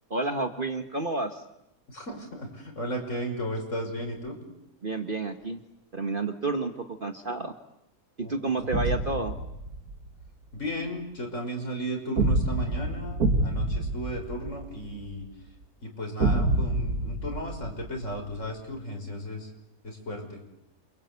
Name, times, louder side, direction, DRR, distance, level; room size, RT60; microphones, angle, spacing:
voice 1, 0.1-1.4 4.8-5.6 5.9-7.5 8.2-9.3, right 3 dB, 35° right, 6 dB, 1.4 m, -30 dB
voice 2, 1.9-4.4 8.2-8.8 10.5-15.2 15.8-19.5 19.8-20.4, equal, 50° left, 2 dB, 6.0 m, -35 dB
sound 1, 8.7-10.1 12.2-15.1 16.2-18.4, right 2 dB, 75° right, 2.6 m, -27 dB
28.0 x 25.0 x 8.3 m, 0.84 s
omnidirectional pair, 1.6 m